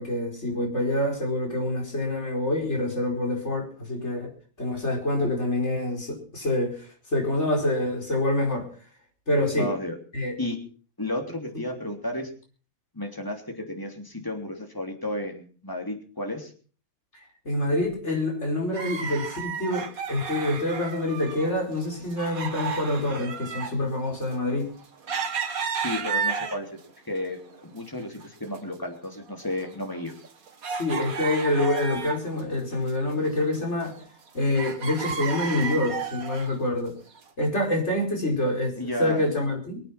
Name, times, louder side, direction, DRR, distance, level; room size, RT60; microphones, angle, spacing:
voice 1, 0.0-4.3 4.6-8.7 9.3-9.7 10.1-10.3 17.5-24.7 30.7-34.0 34.3-37.0 37.4-39.8, left 1 dB, 50° left, 5.4 m, -26 dB
voice 2, 9.6-10.0 10.4-10.6 11.0-12.3 12.9-16.5 25.7-26.7 27.1-30.1 38.8-39.2, left 1 dB, 15° left, 3.2 m, -32 dB
sound 1, 18.7-21.5 21.8-26.9 27.4-28.2 28.5-28.6 29.2-32.4 32.7-34.3 34.6-36.5 37.2-37.3, right 5 dB, 85° right, 2.1 m, -33 dB
23.5 x 9.1 x 5.9 m
omnidirectional pair, 1.5 m